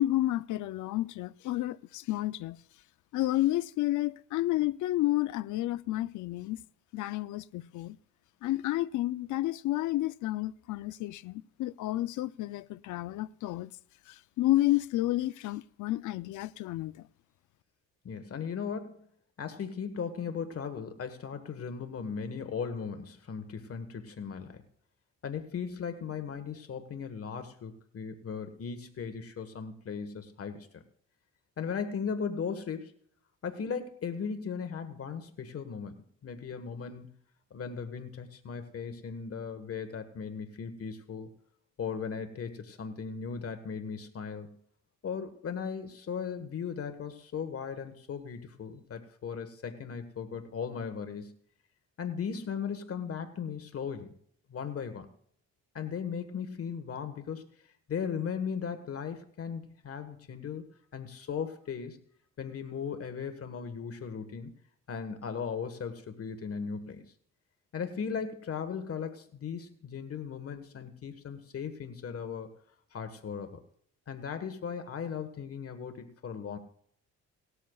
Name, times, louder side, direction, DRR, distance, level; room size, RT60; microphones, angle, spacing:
voice 1, 0.0-2.6 3.1-6.6 6.9-8.0 8.4-13.7 14.1-17.1, left 16 dB, 80° left, 0.5 m, -30 dB
voice 2, 18.0-19.1 19.4-24.6 25.2-30.8 31.6-32.9 33.4-36.0 36.2-37.1 37.5-41.3 41.8-44.6 45.0-51.3 52.0-54.1 54.5-55.1 55.7-57.5 57.9-60.6 60.9-62.0 62.4-64.6 64.9-67.0 67.7-72.5 72.9-73.6 74.1-76.6, left 6 dB, 50° left, 1.4 m, -37 dB
19.0 x 13.0 x 2.4 m
cardioid pair, 90°, 30 cm